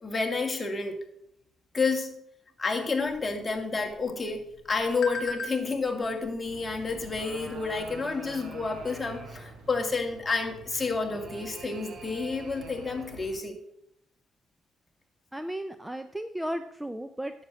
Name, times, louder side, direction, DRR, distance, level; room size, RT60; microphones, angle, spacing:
voice 1, 0.0-1.0 1.7-2.2 2.6-13.6, left 4 dB, 25° left, 3 dB, 2.2 m, -30 dB
sound 1, 3.0-8.1, left 2 dB, 65° left, 1.3 m, -43 dB
sound 2, 6.4-13.4, right 4 dB, 80° right, 2.7 m, -49 dB
sound 3, 6.9-9.7 10.7-13.3, right 3 dB, 45° right, 2.1 m, -46 dB
voice 2, 15.3-17.3, right 1 dB, 10° right, 10 dB, 0.6 m, -34 dB
10.0 x 7.4 x 6.3 m, 0.77 s
cardioid pair, 90°, 0 cm